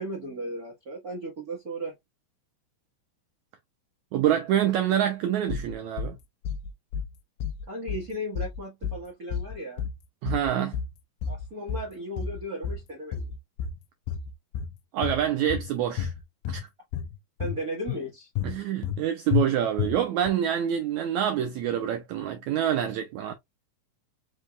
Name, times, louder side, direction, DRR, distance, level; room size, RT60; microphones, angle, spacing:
voice 1, 0.0-1.9 7.7-9.8 11.3-13.3 17.4-18.3, right 1 dB, 55° right, 1.0 m, -36 dB
voice 2, 4.1-6.2 10.2-10.8 14.9-16.1 16.5-16.7 18.4-23.3, right 10 dB, 90° right, 1.6 m, -26 dB
sound 1, 5.5-6.1 6.4-7.1 7.4-8.1 8.4-9.0 9.3-10.0 10.3-11.0 11.2-11.9 12.2-12.9 13.1-13.8 14.1-14.7 15.0-15.7 16.0-16.6 16.9-17.6 17.9-18.0 18.4-19.0 19.3-19.4 19.8-20.3, left 8 dB, 80° left, 2.0 m, -30 dB
5.5 x 3.6 x 2.3 m
omnidirectional pair, 4.0 m